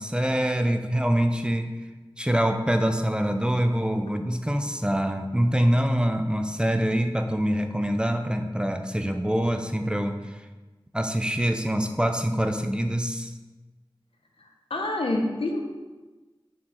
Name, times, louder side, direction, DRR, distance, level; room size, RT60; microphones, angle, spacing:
voice 1, 0.0-1.7 2.2-10.2 10.9-13.3, equal, 10° right, 6 dB, 0.6 m, -25 dB
voice 2, 14.4-15.6, left 2 dB, 90° left, 2 dB, 0.8 m, -28 dB
6.2 x 4.5 x 4.2 m, 1.2 s
wide cardioid pair, 45°, 9 cm